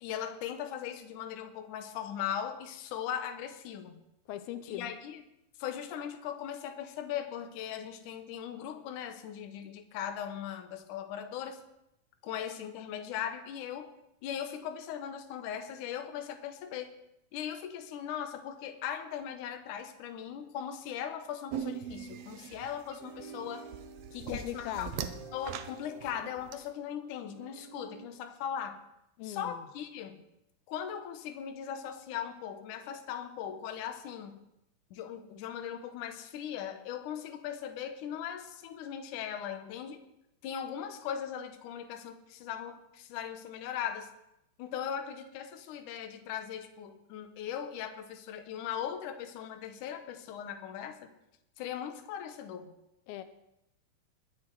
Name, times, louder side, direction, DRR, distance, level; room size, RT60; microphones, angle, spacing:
voice 1, 0.0-4.0 4.7-5.2 5.6-11.6 12.2-13.9 14.2-16.9 17.3-23.6 24.1-24.9 25.3-28.8 29.2-30.2 30.7-34.4 34.9-40.0 40.4-44.1 44.6-51.0 51.6-52.7, left 9 dB, 70° left, 6 dB, 2.3 m, -39 dB
voice 2, 4.3-4.9 24.3-25.1 29.2-29.7 53.1-53.2, left 12 dB, 85° left, 11 dB, 2.5 m, -39 dB
sound 1, 21.5-26.5, right 10 dB, 90° right, 2.6 m, -41 dB
sound 2, 23.0-28.1, right 4 dB, 55° right, 3.2 m, -51 dB
21.0 x 7.8 x 4.7 m, 0.84 s
omnidirectional pair, 4.2 m